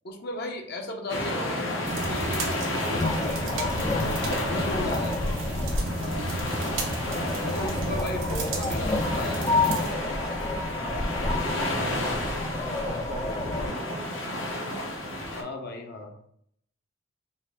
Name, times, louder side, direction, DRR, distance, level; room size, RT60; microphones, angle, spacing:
voice 1, 0.0-4.2 4.5-5.2 7.4-10.0 15.3-16.1, left 2 dB, 55° left, 2 dB, 0.7 m, -35 dB
sound 1, 1.1-15.4, left 1 dB, 80° left, 0.9 m, -32 dB
sound 2, 1.8-9.9, right 2 dB, 90° right, 0.9 m, -33 dB
sound 3, 3.0-13.7, left 2 dB, 20° left, 0.4 m, -30 dB
voice 2, 5.9-6.6 10.8-13.9, right 1 dB, 35° right, 4 dB, 0.5 m, -40 dB
4.2 x 2.5 x 3.6 m, 0.68 s
head